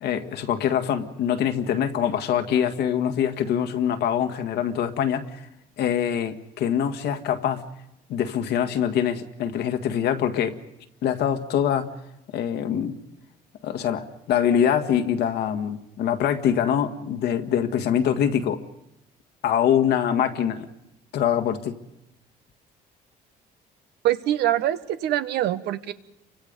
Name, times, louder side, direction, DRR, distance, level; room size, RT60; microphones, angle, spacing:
voice 1, 0.0-5.5 5.8-7.6 8.1-10.6 11.0-11.9 12.3-13.0 13.6-18.6 19.4-20.7 21.1-21.8, left 9 dB, 75° left, 7 dB, 1.8 m, -24 dB
voice 2, 24.0-25.9, right 13 dB, 75° right, 11 dB, 1.3 m, -24 dB
29.5 x 25.0 x 5.4 m, 0.85 s
cardioid pair, 110°, 17 cm